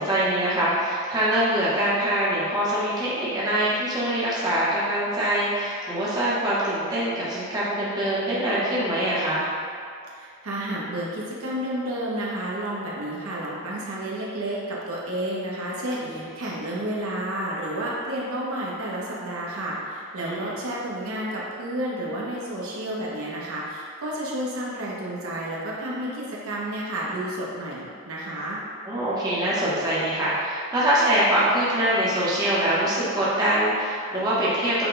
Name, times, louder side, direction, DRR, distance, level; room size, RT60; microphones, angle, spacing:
voice 1, 0.0-9.5 16.0-16.3 20.2-20.5 28.8-34.9, right 1 dB, 15° right, -9 dB, 0.8 m, -24 dB
voice 2, 10.1-28.6, right 1 dB, 75° right, -5 dB, 0.9 m, -31 dB
5.8 x 2.2 x 3.8 m, 2.4 s
head